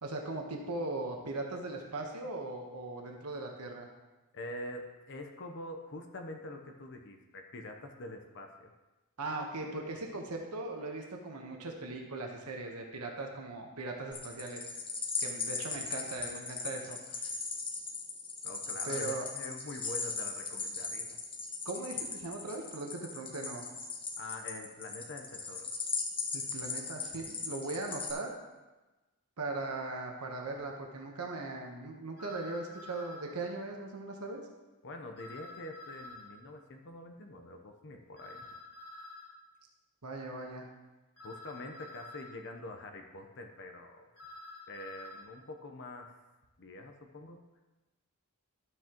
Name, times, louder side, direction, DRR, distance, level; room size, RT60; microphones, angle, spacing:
voice 1, 0.0-3.9 9.2-14.6 15.2-17.3 18.8-19.3 21.6-23.6 26.3-28.3 29.4-34.4 40.0-40.7, right 2 dB, 85° right, 1 dB, 1.2 m, -39 dB
voice 2, 4.3-8.7 18.4-21.2 24.2-25.7 34.8-38.4 41.2-44.1 44.7-46.2 46.6-47.4, left 2 dB, 55° left, 4 dB, 0.9 m, -45 dB
sound 1, 14.1-28.1, left 4 dB, 25° left, 1.1 m, -38 dB
sound 2, 32.2-33.3 35.2-36.3 38.2-39.3 41.2-42.3 44.2-45.2, left 2 dB, 85° left, 2.3 m, -49 dB
12.0 x 7.9 x 3.0 m, 1.1 s
head